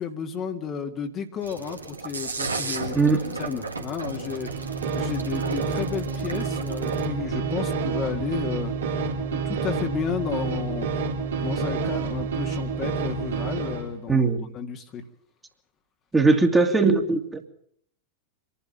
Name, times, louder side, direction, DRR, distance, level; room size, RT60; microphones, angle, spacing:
voice 1, 0.0-3.0 3.4-11.1 11.4-14.2 14.5-15.0, left 7 dB, 30° left, 5 dB, 1.9 m, -32 dB
sound 1, 1.4-7.0, right 3 dB, 80° right, 2.6 m, -34 dB
voice 2, 2.9-3.3 14.1-14.5 16.1-17.5, right 3 dB, 10° right, 4 dB, 2.4 m, -20 dB
sound 2, 4.3-13.9, right 5 dB, 65° right, 3.4 m, -28 dB
25.5 x 11.5 x 9.0 m, 0.67 s
figure-of-eight pair, 90°, 0 cm